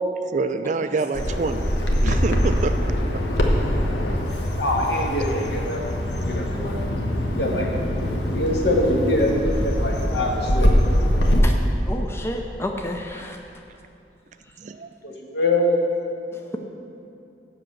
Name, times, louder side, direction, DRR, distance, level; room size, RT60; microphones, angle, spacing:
voice 1, 0.3-1.7 2.0-3.2 13.1-13.3 14.6-14.9, right 4 dB, 45° right, 10 dB, 0.3 m, -27 dB
Bird vocalization bird call bird song, 1.1-11.4, equal, 85° left, 1.1 m, -23 dB
voice 2, 4.5-6.0 6.2-6.8 7.3-7.7 8.3-10.7 15.0-15.6, left 1 dB, 70° left, -1 dB, 1.6 m, -24 dB
voice 3, 11.9-13.4, left 1 dB, 15° left, 2 dB, 0.5 m, -30 dB
7.6 x 5.9 x 7.6 m, 2.8 s
head